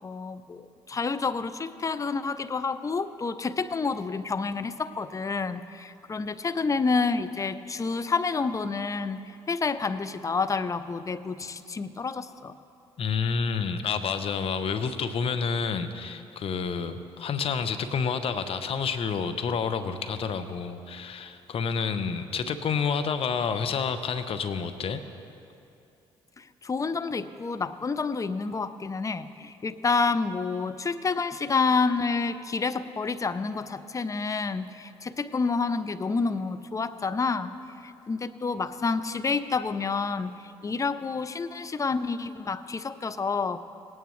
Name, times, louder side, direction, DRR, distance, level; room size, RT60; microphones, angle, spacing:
voice 1, 0.0-12.5 26.4-37.6 37.8-43.6, left 4 dB, 30° left, 13 dB, 0.6 m, -29 dB
voice 2, 13.0-25.0, left 6 dB, 55° left, 10 dB, 0.8 m, -29 dB
19.0 x 9.3 x 3.2 m, 2.6 s
hypercardioid pair, 55°, 12 cm